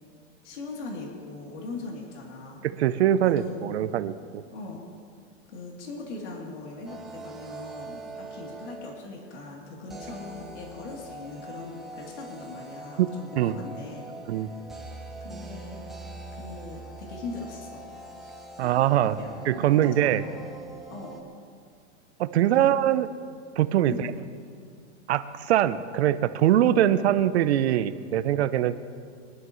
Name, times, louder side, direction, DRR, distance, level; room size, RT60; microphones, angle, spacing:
voice 1, 0.4-2.6 3.2-4.0 4.5-4.8 5.5-14.6 15.2-15.8 16.4-17.8 18.6-20.5 20.9-21.2 22.4-22.7 23.9-24.2, left 3 dB, 70° left, -2 dB, 3.3 m, -40 dB
voice 2, 2.6-4.1 13.0-13.1 13.4-13.6 14.3-14.5 18.6-19.2 19.5-20.2 22.2-23.1 23.6-24.1 25.1-28.8, right 11 dB, 60° right, 12 dB, 0.8 m, -22 dB
sound 1, 6.9-9.1 9.9-21.2, right 2 dB, ahead, 0.5 m, -42 dB
23.5 x 11.5 x 3.2 m, 2.2 s
supercardioid pair, 170°, 36 cm